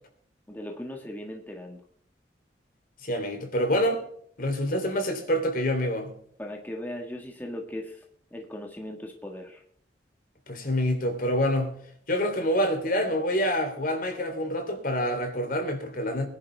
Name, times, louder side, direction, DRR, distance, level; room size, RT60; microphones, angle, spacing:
voice 1, 0.5-1.8 6.4-8.0 8.3-9.6, left 1 dB, 10° left, 1.6 m, -38 dB
voice 2, 3.0-4.0 4.4-6.1 10.5-11.8 12.1-16.3, equal, 50° left, 3.2 m, -26 dB
22.0 x 10.5 x 3.4 m
head